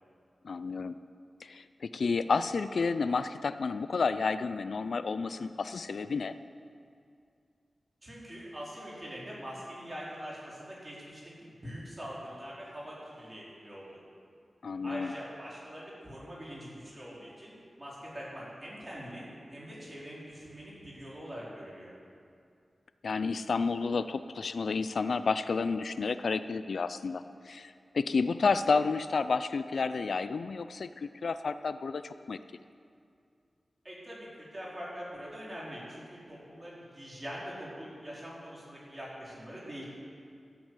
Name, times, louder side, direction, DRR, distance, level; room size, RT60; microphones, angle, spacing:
voice 1, 0.4-0.9 1.4-6.3 14.6-15.1 23.0-32.4, left 4 dB, 75° left, 12 dB, 0.4 m, -31 dB
voice 2, 8.0-14.0 14.8-21.9 33.8-39.9, equal, 20° right, -6 dB, 4.5 m, -43 dB
13.5 x 8.8 x 8.3 m, 2.4 s
wide cardioid pair, 110°, 0 cm